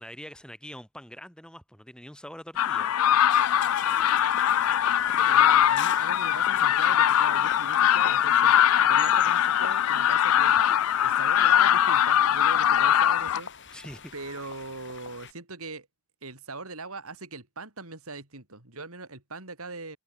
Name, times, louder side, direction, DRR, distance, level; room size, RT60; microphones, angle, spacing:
voice 1, 0.0-3.5 13.7-14.1, equal, 5° left, 4.8 m, -44 dB
sound 1, 2.6-13.4, left 10 dB, 80° left, 0.4 m, -22 dB
sound 2, 3.3-15.3, left 7 dB, 60° left, 4.3 m, -42 dB
voice 2, 5.2-8.6 8.9-10.6 11.0-13.8 14.1-15.9 16.2-20.0, right 3 dB, 90° right, 4.8 m, -41 dB
head